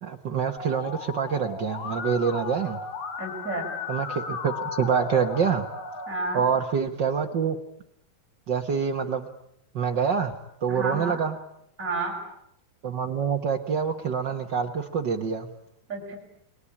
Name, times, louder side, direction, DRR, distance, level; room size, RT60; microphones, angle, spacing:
voice 1, 0.0-2.8 3.9-5.6 6.3-7.6 8.5-9.3 9.7-10.3 10.6-11.4 12.8-15.5, right 6 dB, 80° right, 5 dB, 1.0 m, -26 dB
Musical instrument, 0.6-6.1, left 5 dB, 65° left, 3.9 m, -35 dB
voice 2, 3.2-3.7 6.1-6.4 10.7-11.2 11.8-12.2 15.9-16.2, right 2 dB, 20° right, -1 dB, 6.9 m, -31 dB
30.0 x 21.5 x 8.6 m, 0.75 s
omnidirectional pair, 4.1 m